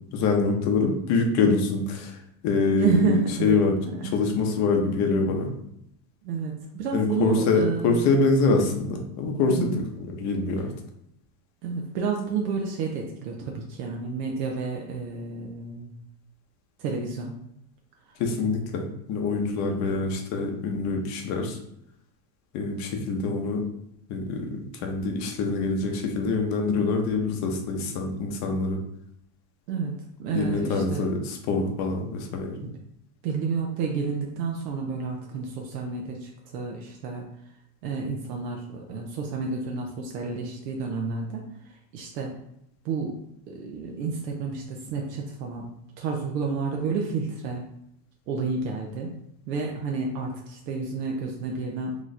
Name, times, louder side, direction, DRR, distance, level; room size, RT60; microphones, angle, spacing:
voice 1, 0.1-2.2 2.4-3.8 4.1-5.5 6.9-10.7 18.2-21.6 22.5-23.6 24.1-28.8 30.3-32.6, left 3 dB, 35° left, 3 dB, 0.7 m, -25 dB
voice 2, 2.7-3.6 3.9-4.1 6.2-8.0 9.5-9.8 11.6-15.9 16.8-17.3 29.7-29.9 30.2-31.3 32.6-32.7 33.2-37.2 37.8-41.4 41.9-42.3 42.8-43.2 43.5-45.7 46.0-47.6 48.3-49.2 49.5-52.0, right 4 dB, 90° right, 0 dB, 0.8 m, -30 dB
3.1 x 2.4 x 4.0 m, 0.77 s
supercardioid pair, 140°, 48 cm